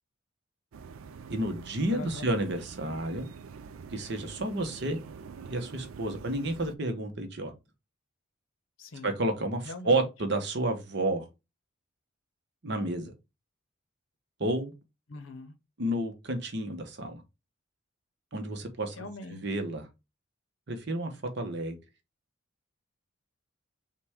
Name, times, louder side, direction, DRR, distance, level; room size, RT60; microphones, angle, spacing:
sound 1, 0.7-6.7, right 5 dB, 75° right, 0.4 m, -46 dB
voice 1, 1.3-3.3 3.9-5.0 5.5-7.5 9.0-11.3 12.6-13.1 14.4-14.7 15.8-17.2 18.3-19.0 19.4-19.8 20.7-21.8, right 1 dB, 55° right, 0.8 m, -30 dB
voice 2, 1.9-2.4 8.8-9.1 9.6-10.1 15.1-15.6 18.9-19.4, left 2 dB, 70° left, 0.7 m, -42 dB
5.8 x 2.3 x 3.4 m
head